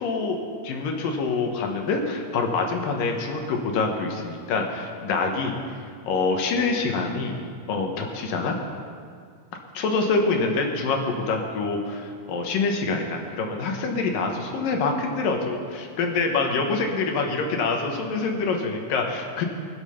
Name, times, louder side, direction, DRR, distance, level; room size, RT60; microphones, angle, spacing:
voice 1, 0.0-5.5 6.1-7.4 7.7-8.6 9.7-19.4, left 4 dB, 65° left, 2 dB, 2.5 m, -26 dB
21.5 x 7.9 x 5.7 m, 2.2 s
omnidirectional pair, 4.7 m